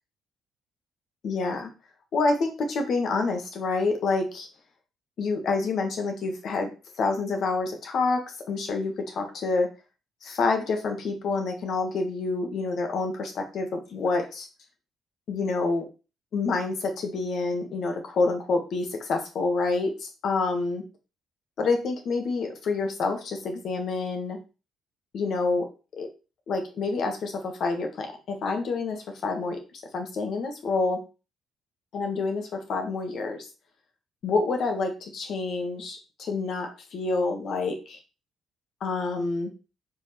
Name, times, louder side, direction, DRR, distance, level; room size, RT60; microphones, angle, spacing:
voice 1, 1.2-1.7 2.1-4.5 5.2-6.7 7.0-9.7 10.2-14.5 15.3-15.9 16.3-20.8 21.6-24.4 25.1-25.7 26.0-26.1 26.5-29.6 29.9-31.0 31.9-33.5 34.2-38.0 38.8-39.5, left 3 dB, 60° left, 4 dB, 1.8 m, -27 dB
4.9 x 4.8 x 5.9 m, 0.31 s
cardioid pair, 125°, 0 cm